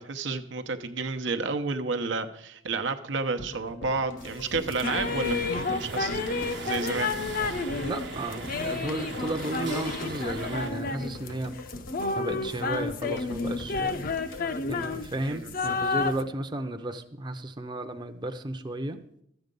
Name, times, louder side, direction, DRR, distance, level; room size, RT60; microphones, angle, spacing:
voice 1, 0.0-7.2 15.3-15.5, right 4 dB, 85° right, 7 dB, 0.8 m, -31 dB
sound 1, 3.4-15.6 15.8-15.9, left 1 dB, 90° left, 2.2 m, -42 dB
sound 2, 4.2-16.2, left 4 dB, 50° left, 0.6 m, -31 dB
sound 3, 4.8-10.7, right 4 dB, 65° right, 1.0 m, -40 dB
voice 2, 7.8-11.5 12.2-14.0 14.7-19.0, right 1 dB, 25° right, 6 dB, 0.6 m, -33 dB
12.5 x 7.9 x 5.3 m, 0.72 s
head